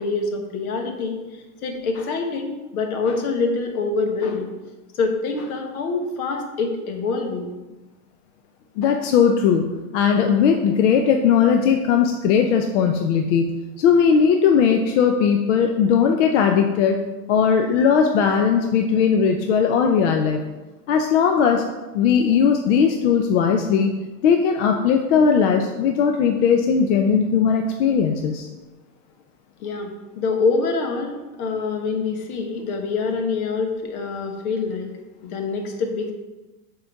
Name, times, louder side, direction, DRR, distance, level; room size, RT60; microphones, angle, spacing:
voice 1, 0.0-4.5 4.9-7.5 29.6-34.9 35.2-36.1, left 4 dB, 70° left, 4 dB, 1.3 m, -25 dB
voice 2, 8.8-17.0 17.3-20.4 20.9-21.6 21.9-23.9 24.2-28.5, left 6 dB, 50° left, 4 dB, 0.6 m, -18 dB
6.6 x 3.9 x 4.6 m, 1.2 s
supercardioid pair, 155°, 46 cm